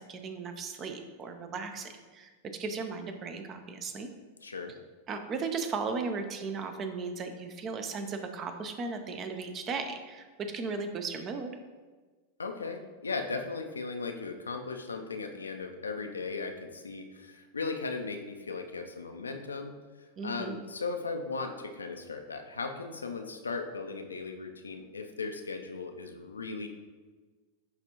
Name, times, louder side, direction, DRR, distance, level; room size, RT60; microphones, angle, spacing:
voice 1, 0.0-2.3 2.6-4.1 5.1-11.5 20.2-20.6, right 4 dB, 30° right, 7 dB, 0.6 m, -36 dB
voice 2, 4.4-4.7 12.4-19.8 20.2-26.7, left 4 dB, 75° left, 5 dB, 0.5 m, -37 dB
9.5 x 3.3 x 2.9 m, 1.4 s
figure-of-eight pair, 90°, 0 cm